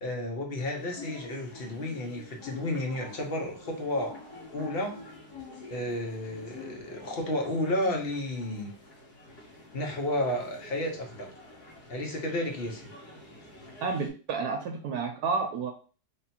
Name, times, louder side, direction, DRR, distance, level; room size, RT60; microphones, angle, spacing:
voice 1, 0.0-4.2 4.5-4.9 5.7-8.7 9.7-11.3 11.9-12.9, left 1 dB, 45° left, 2 dB, 0.9 m, -32 dB
sound 1, 0.5-14.1, left 2 dB, 90° left, 1.8 m, -47 dB
voice 2, 13.8-15.7, right 4 dB, 80° right, 4 dB, 1.1 m, -30 dB
3.6 x 2.5 x 4.2 m, 0.37 s
omnidirectional pair, 1.7 m